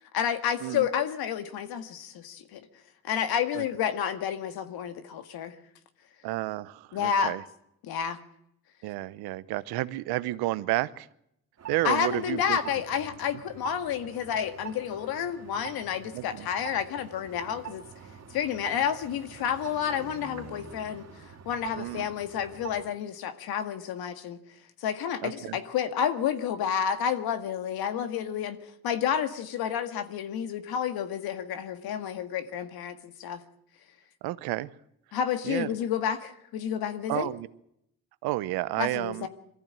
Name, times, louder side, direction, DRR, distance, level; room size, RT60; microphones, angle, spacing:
voice 1, 0.1-2.6 3.0-5.6 6.9-7.3 7.8-8.2 11.8-17.8 18.3-24.4 24.8-33.4 35.1-37.3 38.8-39.3, left 8 dB, 80° left, 9 dB, 1.9 m, -30 dB
voice 2, 6.2-7.4 8.8-11.1 11.7-12.6 16.1-16.5 21.8-22.1 25.2-25.6 34.2-34.7 35.4-35.7 37.1-37.5 38.2-39.3, right 17 dB, 90° right, 16 dB, 0.9 m, -31 dB
sound 1, 11.6-22.9, right 7 dB, 45° right, 2.9 m, -46 dB
22.5 x 15.0 x 8.9 m, 0.78 s
cardioid pair, 80°, 37 cm